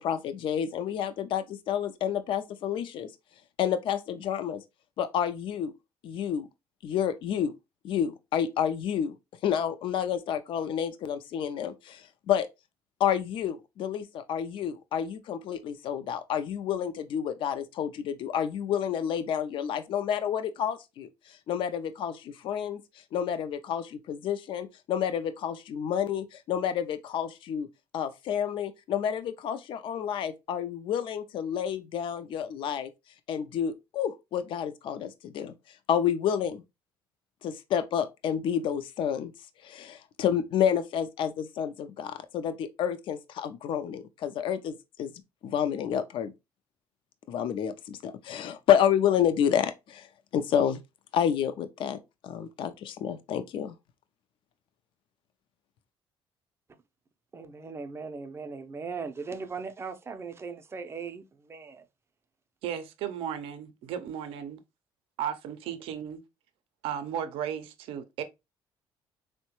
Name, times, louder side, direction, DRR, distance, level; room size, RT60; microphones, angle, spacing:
voice 1, 0.0-3.1 3.6-4.6 5.0-5.7 6.0-6.5 6.8-7.5 7.8-9.1 9.4-12.5 13.0-22.8 23.1-27.7 27.9-32.9 33.3-35.5 35.9-36.6 37.4-39.3 39.6-45.1 45.4-46.3 47.3-50.1 50.3-50.8 51.1-52.0 52.2-53.7, left 9 dB, 65° left, 0.4 m, -29 dB
voice 2, 57.3-61.8, right 5 dB, 25° right, 0.4 m, -39 dB
voice 3, 62.6-64.6 65.2-66.2 66.8-68.2, right 9 dB, 80° right, 0.5 m, -35 dB
3.6 x 2.1 x 2.8 m
cardioid pair, 95°, 9 cm